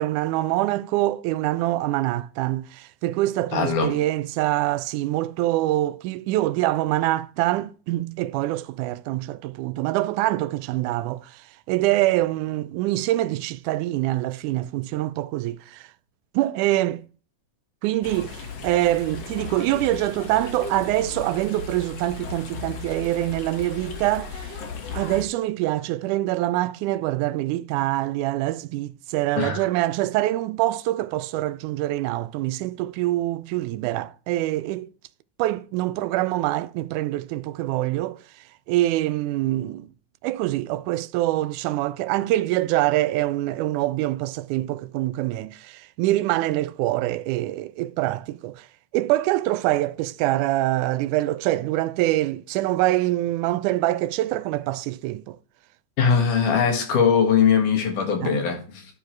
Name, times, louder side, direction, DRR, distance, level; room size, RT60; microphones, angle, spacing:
voice 1, 0.0-15.9 16.3-17.1 17.8-24.5 24.9-34.9 35.4-38.2 38.7-39.9 40.2-48.7 48.9-55.4 58.2-58.4, right 16 dB, 85° right, 2.0 m, -25 dB
voice 2, 3.5-4.0 29.4-29.6 56.0-58.9, left 6 dB, 85° left, 3.2 m, -21 dB
sound 1, 18.0-25.3, left 4 dB, 60° left, 2.4 m, -36 dB
11.5 x 4.9 x 4.5 m
omnidirectional pair, 3.5 m